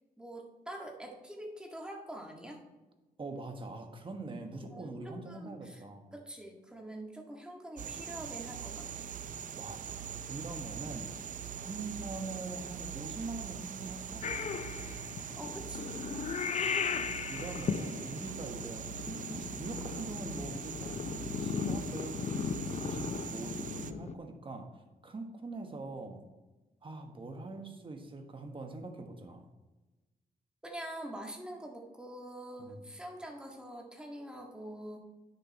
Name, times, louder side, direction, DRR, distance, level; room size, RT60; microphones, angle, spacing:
voice 1, 0.2-2.6 4.5-5.8 6.1-9.1 15.4-16.0 30.6-35.0, right 1 dB, 5° right, 0 dB, 1.7 m, -45 dB
voice 2, 3.2-6.1 9.5-11.1 11.6-14.3 16.8-21.0 21.4-22.4 22.8-26.2 26.8-29.5 32.6-32.8, right 3 dB, 35° right, 4 dB, 1.3 m, -43 dB
sound 1, 7.8-23.9, right 8 dB, 55° right, 0.5 m, -42 dB
Purr / Meow, 14.2-24.2, left 6 dB, 45° left, 0.5 m, -37 dB
10.0 x 6.7 x 4.2 m, 1.1 s
cardioid pair, 105°, 15 cm